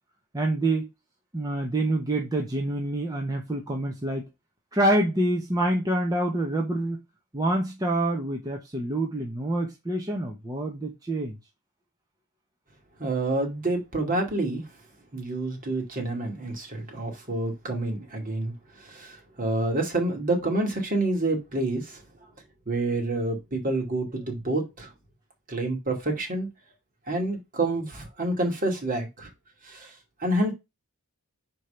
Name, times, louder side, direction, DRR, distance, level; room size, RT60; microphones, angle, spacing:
voice 1, 0.3-0.9 1.3-4.3 4.7-7.0 7.3-11.3, right 1 dB, 15° right, 1.0 m, -26 dB
voice 2, 13.0-14.6 15.1-22.0 22.7-24.9 25.5-26.5 27.1-29.3 29.6-29.9 30.2-30.5, right 2 dB, 40° right, 2.3 m, -28 dB
5.1 x 4.6 x 5.6 m
head